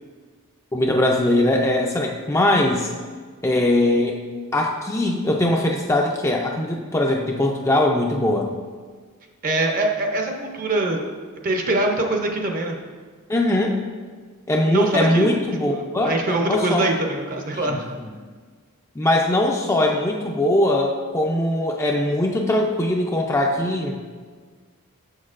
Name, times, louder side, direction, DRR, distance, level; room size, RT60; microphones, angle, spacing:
voice 1, 0.7-2.9 3.4-4.2 4.5-8.5 13.3-13.8 14.5-16.9 17.6-17.8 19.0-24.0, left 1 dB, 15° left, 0 dB, 0.3 m, -21 dB
voice 2, 9.4-11.0 11.4-12.8 14.7-15.3 15.6-17.9, right 2 dB, 40° right, 3 dB, 0.6 m, -23 dB
6.7 x 6.4 x 2.4 m, 1.5 s
head